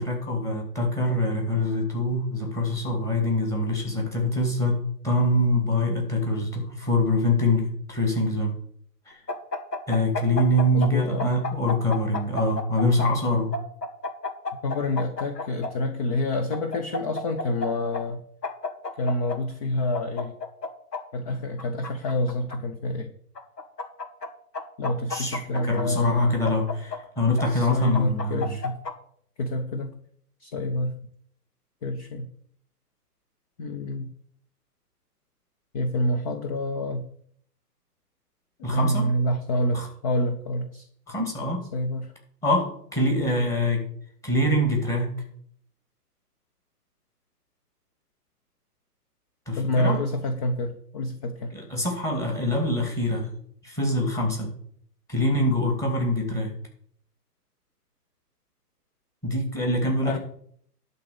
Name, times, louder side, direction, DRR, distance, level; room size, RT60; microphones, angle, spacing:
voice 1, 0.0-4.8 5.0-8.5 9.1-9.2 9.9-13.5 25.1-28.6 38.6-39.1 39.7-39.9 41.1-41.6 42.4-43.8 44.2-45.1 49.5-50.0 51.5-53.3 53.6-54.5 55.1-56.5 59.2-60.2, left 1 dB, 5° left, 1 dB, 2.2 m, -24 dB
sound 1, 9.3-10.9 11.2-13.1 13.5-15.7 16.5-17.7 17.9-18.0 18.4-19.4 19.9-21.0 21.6-22.6 23.4-24.3 24.5-25.8 26.5-27.4 27.9-28.9, left 3 dB, 85° left, 2.0 m, -31 dB
voice 2, 10.7-11.3 14.6-18.2 18.9-20.3 21.1-23.1 24.8-26.4 27.5-28.8 29.4-30.0 30.4-31.0 31.8-32.3 33.6-34.1 35.7-37.1 38.7-40.9 41.7-42.1 43.4-43.5 49.6-51.5 60.1-60.2, left 1 dB, 25° left, 7 dB, 0.6 m, -27 dB
11.5 x 4.0 x 7.8 m, 0.64 s
hypercardioid pair, 135°, 48 cm